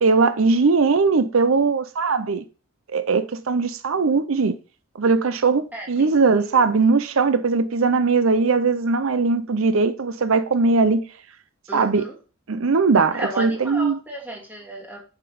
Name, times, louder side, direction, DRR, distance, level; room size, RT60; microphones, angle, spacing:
voice 1, 0.0-2.4 2.9-4.5 5.0-11.0 11.7-12.1 12.5-14.0, right 4 dB, 75° right, 0.6 m, -20 dB
voice 2, 5.7-6.6 11.7-12.1 13.1-15.0, right 1 dB, 10° right, 2.4 m, -34 dB
7.6 x 5.9 x 5.1 m
head